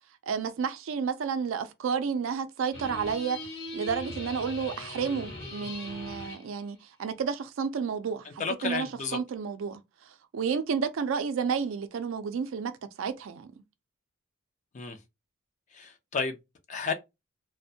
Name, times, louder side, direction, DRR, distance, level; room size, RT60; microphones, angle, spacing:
voice 1, 0.2-9.8 10.1-13.5, right 6 dB, 70° right, 0.4 m, -31 dB
sound 1, 2.7-6.5, left 1 dB, 55° left, 1.0 m, -40 dB
voice 2, 8.4-9.2 14.7-15.0 15.7-16.4 16.7-16.9, left 5 dB, 35° left, 0.4 m, -32 dB
2.5 x 2.1 x 2.6 m
head